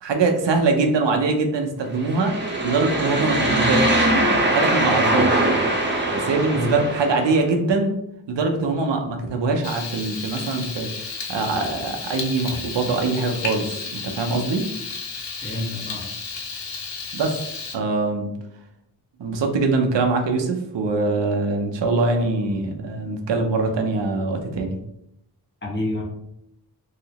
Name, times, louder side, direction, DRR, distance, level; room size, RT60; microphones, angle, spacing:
voice 1, 0.0-2.4 2.6-4.1 4.5-5.4 6.1-7.9 8.3-10.9 11.3-14.7 17.1-17.4 17.7-18.3 19.2-24.8, right 3 dB, 90° right, 4 dB, 0.6 m, -23 dB
sound 1, 2.0-7.4, right 1 dB, 25° right, 0.7 m, -21 dB
Frying (food), 9.6-17.8, left 4 dB, 80° left, 0.6 m, -33 dB
voice 2, 15.4-16.1 25.6-26.0, left 1 dB, 25° left, -3 dB, 1.1 m, -29 dB
3.2 x 2.8 x 2.8 m, 0.80 s
cardioid pair, 50°, 42 cm